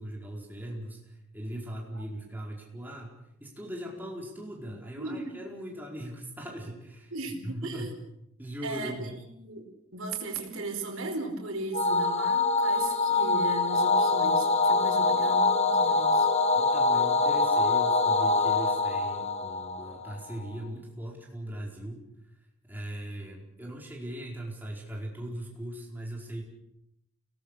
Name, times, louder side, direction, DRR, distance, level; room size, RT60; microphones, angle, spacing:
voice 1, 0.0-7.1 7.4-7.9 8.4-9.1 16.5-22.0 22.3-22.4 22.6-26.4, right 1 dB, 10° right, -2 dB, 4.7 m, -39 dB
voice 2, 2.0-2.3 5.0-5.3 7.1-8.0 8.6-16.3, right 2 dB, 70° right, 3 dB, 4.8 m, -37 dB
sound 1, 11.7-20.3, left 3 dB, 30° left, 1.4 m, -24 dB
28.0 x 19.0 x 6.5 m, 0.81 s
head